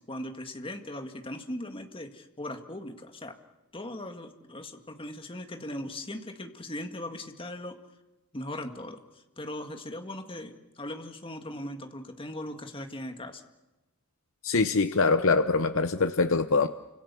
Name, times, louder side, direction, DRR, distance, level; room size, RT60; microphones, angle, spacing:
voice 1, 0.0-3.4 3.7-7.8 8.3-13.4, left 1 dB, 25° left, 6 dB, 1.9 m, -39 dB
voice 2, 14.4-16.7, left 4 dB, 60° left, 9 dB, 0.9 m, -24 dB
30.0 x 25.5 x 7.0 m, 1.1 s
head